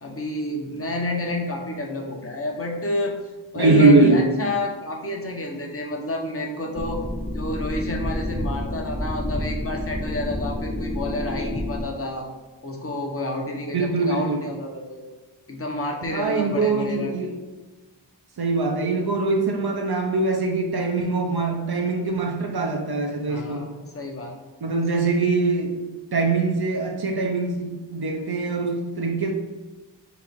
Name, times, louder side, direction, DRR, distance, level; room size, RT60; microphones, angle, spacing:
voice 1, 0.0-3.2 3.5-7.0 7.3-12.3 12.6-15.0 15.5-17.1 23.3-24.3, left 2 dB, 30° left, 0 dB, 0.8 m, -29 dB
voice 2, 3.6-4.3 13.7-14.4 16.1-17.3 18.4-23.7 24.6-25.8 26.1-29.3, right 3 dB, 55° right, 2 dB, 0.7 m, -22 dB
sound 1, 6.8-11.8, left 1 dB, 10° left, 0.4 m, -29 dB
3.9 x 2.4 x 4.5 m, 1.2 s
cardioid pair, 45°, 47 cm